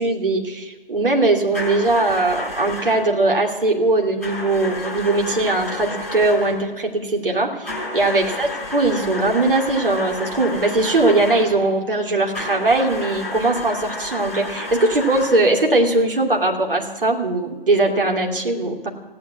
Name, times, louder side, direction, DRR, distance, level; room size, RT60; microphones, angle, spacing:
voice 1, 0.0-18.9, right 2 dB, 65° right, 0 dB, 2.8 m, -20 dB
sound 1, 1.5-3.1 4.2-6.7 7.6-11.6 12.3-15.6, left 2 dB, ahead, 3.6 m, -31 dB
15.5 x 9.6 x 9.6 m, 1.2 s
figure-of-eight pair, 150°, 29 cm